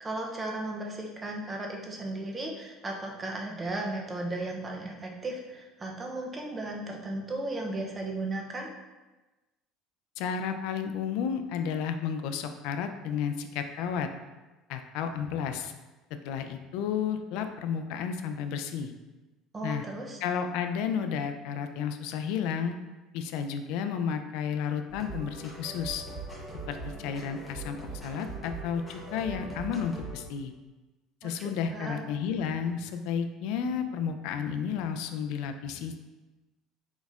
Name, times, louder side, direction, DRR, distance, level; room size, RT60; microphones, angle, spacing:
voice 1, 0.0-8.7 19.5-20.2 31.2-32.1, right 2 dB, 15° right, 1 dB, 0.5 m, -35 dB
voice 2, 10.2-14.1 14.7-15.7 16.2-18.9 19.6-19.8 20.2-22.8 23.1-26.0 26.7-30.5 31.2-36.0, left 7 dB, 65° left, 7 dB, 0.3 m, -32 dB
sound 1, 24.9-30.2, right 2 dB, ahead, 0.8 m, -41 dB
4.0 x 3.9 x 2.4 m, 1.1 s
cardioid pair, 170°, 0 cm